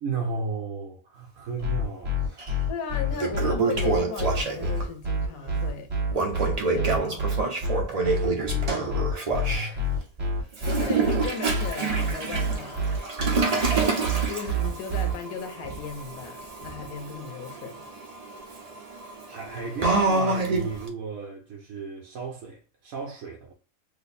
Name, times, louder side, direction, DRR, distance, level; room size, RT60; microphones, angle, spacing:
voice 1, 0.0-2.5 7.9-9.9 18.8-19.0 19.3-23.5, right 4 dB, 75° right, 1.0 m, -35 dB
sound 1, 1.6-15.1, equal, 30° right, 1.1 m, -27 dB
Toilet flush, 2.4-2.5 2.9-4.9 6.1-9.7 10.5-20.9, right 3 dB, 50° right, 0.4 m, -28 dB
voice 2, 2.7-5.9 6.4-7.2 10.6-12.9 14.3-17.9, left 6 dB, 75° left, 1.2 m, -36 dB
3.2 x 2.0 x 4.0 m
omnidirectional pair, 1.6 m